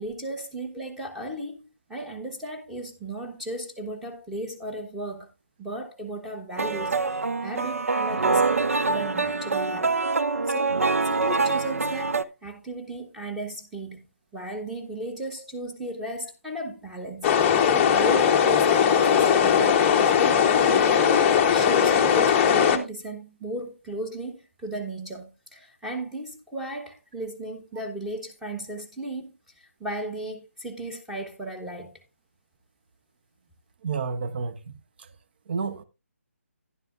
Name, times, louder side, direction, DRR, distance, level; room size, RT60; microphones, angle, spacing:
voice 1, 0.0-1.6 1.9-5.3 5.6-9.9 10.5-14.0 14.3-17.3 17.9-32.0, right 1 dB, 5° right, 1.1 m, -35 dB
sound 1, 6.6-12.2, right 3 dB, 70° right, 0.6 m, -25 dB
sound 2, 17.2-22.8, left 7 dB, 15° left, 0.7 m, -19 dB
voice 2, 33.8-34.7 35.5-35.8, right 5 dB, 40° right, 0.9 m, -30 dB
11.5 x 11.0 x 2.4 m
figure-of-eight pair, 150°, 8 cm